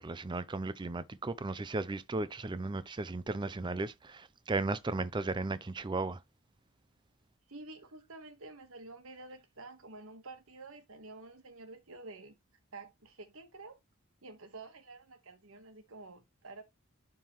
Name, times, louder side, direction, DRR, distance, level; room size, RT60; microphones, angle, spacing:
voice 1, 0.0-6.2, right 3 dB, 20° right, 0.4 m, -35 dB
voice 2, 7.5-12.4 12.7-13.8 14.2-16.6, right 3 dB, 70° right, 1.3 m, -49 dB
11.0 x 3.7 x 3.0 m
head